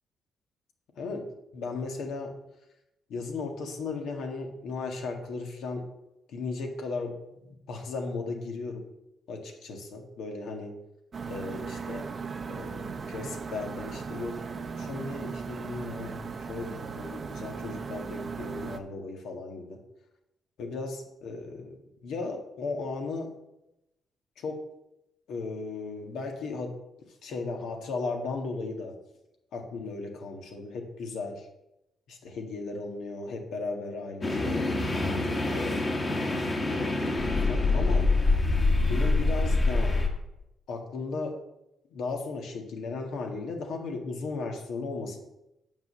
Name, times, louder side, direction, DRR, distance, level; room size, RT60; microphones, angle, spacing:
voice 1, 0.9-2.3 3.1-5.9 6.3-7.4 7.7-8.9 9.3-10.8 11.3-12.1 12.5-19.8 20.6-23.3 24.4-24.7 25.3-26.8 27.2-29.0 29.5-31.5 32.1-34.7 35.1-35.9 36.7-38.1 38.7-40.0 40.7-41.4 41.9-45.2, left 3 dB, 75° left, 2 dB, 1.7 m, -36 dB
sound 1, 11.1-18.8, right 5 dB, 40° right, 0.7 m, -37 dB
sound 2, 34.2-40.1, left 2 dB, 30° left, 1.7 m, -25 dB
7.4 x 5.9 x 6.7 m, 0.89 s
cardioid pair, 90°, 0 cm